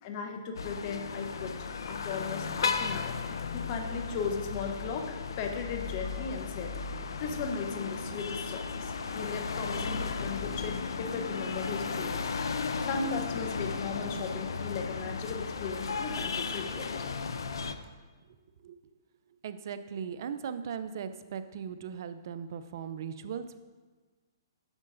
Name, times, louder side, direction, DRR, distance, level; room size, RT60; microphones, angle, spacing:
voice 1, 0.0-6.7 7.2-16.9, left 5 dB, 40° left, 5 dB, 0.8 m, -37 dB
sound 1, 0.6-17.8, left 5 dB, 80° left, 0.5 m, -35 dB
voice 2, 18.3-18.8 19.4-23.6, right 7 dB, 55° right, 11 dB, 0.4 m, -38 dB
9.7 x 6.5 x 2.5 m, 1.3 s
hypercardioid pair, 150°, 2 cm